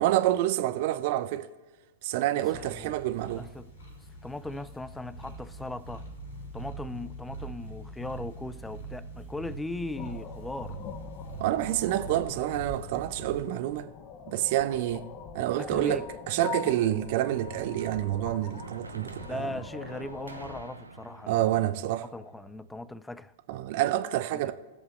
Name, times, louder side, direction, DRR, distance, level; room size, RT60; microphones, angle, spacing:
voice 1, 0.0-1.5 2.0-3.5 11.4-13.9 14.3-15.1 15.3-19.6 21.3-22.1 23.5-24.5, right 14 dB, 50° right, 0.7 m, -28 dB
sound 1, 2.5-13.5, right 3 dB, 70° left, 3.0 m, -43 dB
voice 2, 2.5-2.9 3.4-3.7 4.2-6.1 6.5-10.8 15.6-16.1 19.2-21.7 22.1-23.3 24.3-24.5, left 2 dB, 5° left, 0.4 m, -38 dB
sound 2, 10.0-20.6, left 7 dB, 35° left, 0.9 m, -43 dB
sound 3, 16.8-22.9, right 3 dB, 90° right, 0.8 m, -47 dB
19.0 x 7.5 x 3.1 m
figure-of-eight pair, 100°, 0 cm